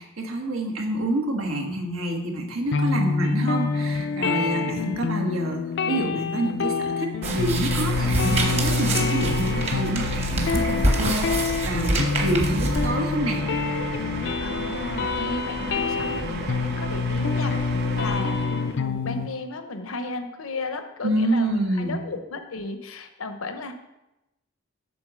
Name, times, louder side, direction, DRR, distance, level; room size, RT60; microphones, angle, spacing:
voice 1, 0.0-13.5 21.0-22.0, right 1 dB, 80° right, 2 dB, 1.3 m, -27 dB
sound 1, 2.7-19.3, left 4 dB, 60° left, 0.4 m, -27 dB
sound 2, 7.2-12.9, right 1 dB, 30° right, 1.1 m, -27 dB
sound 3, 7.2-18.8, right 2 dB, 55° right, 0.8 m, -33 dB
voice 2, 14.4-23.7, left 2 dB, 80° left, 7 dB, 0.8 m, -34 dB
7.8 x 3.8 x 6.2 m, 0.95 s
head